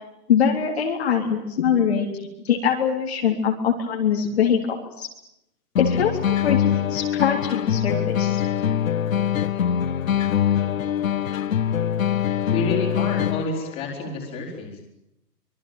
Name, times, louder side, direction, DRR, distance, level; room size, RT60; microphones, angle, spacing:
voice 1, 0.3-2.1 2.4-5.1 5.8-8.4, left 7 dB, 40° left, 1 dB, 3.7 m, -23 dB
sound 1, 5.8-13.7, left 9 dB, 55° left, 0.9 m, -23 dB
voice 2, 12.5-14.8, left 3 dB, 10° left, -1 dB, 4.7 m, -29 dB
26.0 x 23.0 x 9.1 m, 0.83 s
hypercardioid pair, 175°, 48 cm